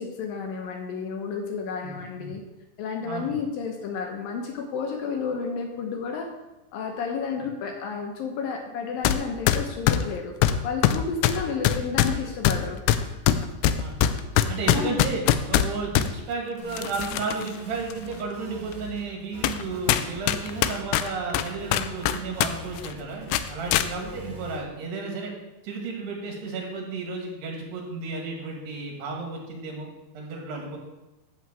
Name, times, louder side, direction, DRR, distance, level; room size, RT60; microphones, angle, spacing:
voice 1, 0.0-2.4 2.8-6.3 6.7-10.3 10.6-12.8 14.7-14.9, left 5 dB, 70° left, 3 dB, 2.4 m, -31 dB
voice 2, 1.8-2.3 3.0-3.3 11.3-11.4 13.8-14.0 14.5-15.2 15.5-25.3 25.6-30.8, right 4 dB, 85° right, 0 dB, 4.2 m, -33 dB
sound 1, 9.0-9.2 9.5-16.1 16.7-17.5 17.9-18.0 18.7-18.8 19.4-19.6 19.9-22.5 22.8-22.9 23.3-23.9, left 11 dB, 90° left, 2.6 m, -22 dB
sound 2, 16.6-17.1 17.3-19.1 19.3-24.6, left 1 dB, 55° right, 4.2 m, -43 dB
11.0 x 4.6 x 7.5 m, 1.0 s
omnidirectional pair, 4.7 m